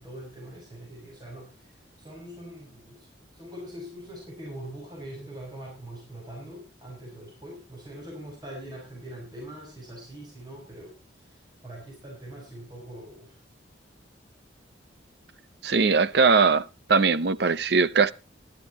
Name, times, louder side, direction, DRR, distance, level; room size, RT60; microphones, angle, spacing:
voice 1, 0.0-1.7 2.0-3.1 3.3-10.9 11.2-11.4 11.6-13.4, right 1 dB, 20° right, 5.9 m, -42 dB
voice 2, 15.6-18.1, right 5 dB, 60° right, 0.6 m, -21 dB
14.5 x 12.0 x 4.1 m
head